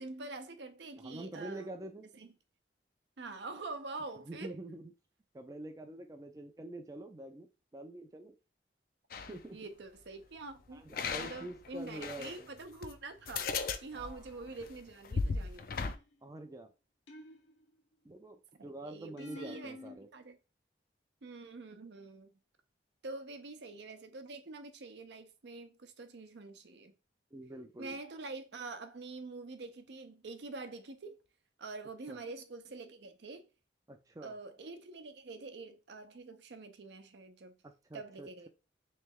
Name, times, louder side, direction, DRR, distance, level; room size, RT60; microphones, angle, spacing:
voice 1, 0.0-1.7 2.1-2.3 3.2-4.5 9.5-10.8 11.2-13.5 13.8-15.7 18.6-20.4 21.2-22.3 23.0-26.9 27.8-31.1 31.6-33.5 34.2-37.5 37.9-38.5, right 3 dB, 75° right, 0.6 m, -46 dB
voice 2, 0.9-2.1 4.3-4.9 5.3-8.3 9.3-9.6 10.7-12.5 13.9-14.2 16.2-16.7 18.0-20.1 27.3-28.0 32.1-32.2 33.9-34.3 37.6-38.5, right 1 dB, 20° right, 0.4 m, -46 dB
sound 1, 9.1-9.4 10.9-12.4 12.8-12.9 13.3-16.0, left 4 dB, 50° left, 0.4 m, -36 dB
sound 2, 15.8-16.3 17.1-17.9 19.2-20.0, left 2 dB, 80° left, 0.8 m, -50 dB
3.3 x 3.2 x 3.5 m
head